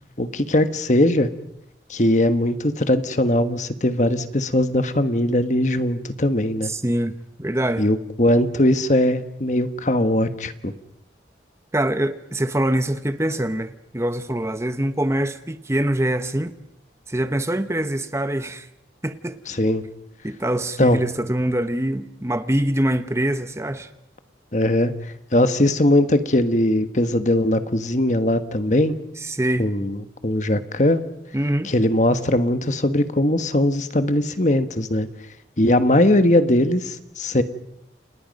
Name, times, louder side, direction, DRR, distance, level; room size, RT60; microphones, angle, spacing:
voice 1, 0.2-1.3 1.9-6.7 7.8-10.7 19.5-19.8 20.8-21.0 24.5-24.9 25.3-28.9 29.6-31.0 31.6-35.1 35.6-37.4, left 1 dB, 40° left, 1.3 m, -20 dB
voice 2, 6.6-7.8 11.7-16.5 17.1-18.7 19.0-19.4 20.2-23.9 29.2-29.7 31.3-31.7, right 1 dB, 15° right, 1.0 m, -24 dB
30.0 x 29.0 x 5.4 m
head